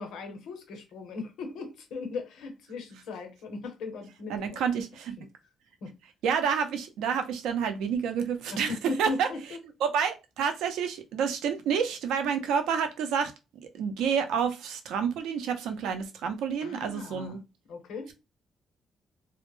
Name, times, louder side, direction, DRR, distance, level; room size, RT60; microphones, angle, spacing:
voice 1, 0.0-4.8 5.2-5.3 5.8-5.9 8.5-9.6 16.6-17.4 17.7-18.1, left 3 dB, 80° left, 0.8 m, -38 dB
voice 2, 4.3-5.2 6.2-8.7 9.0-9.3 9.8-13.3 13.7-17.4, right 7 dB, 90° right, 0.5 m, -29 dB
2.1 x 2.0 x 3.0 m
cardioid pair, 90°, 0 cm